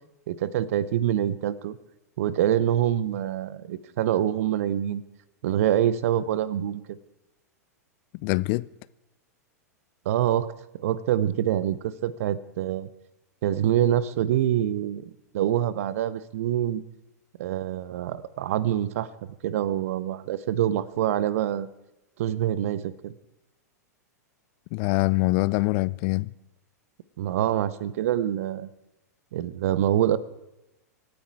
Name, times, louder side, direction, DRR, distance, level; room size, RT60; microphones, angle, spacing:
voice 1, 0.3-1.8 2.2-5.0 5.4-7.0 10.0-12.9 13.4-16.8 17.4-19.1 19.4-21.7 22.2-23.1 27.2-28.7 29.3-30.2, right 11 dB, 55° right, 0.8 m, -25 dB
voice 2, 8.2-8.7 24.7-26.3, left 23 dB, 40° left, 0.4 m, -24 dB
24.5 x 9.6 x 4.7 m
figure-of-eight pair, 95°, 9 cm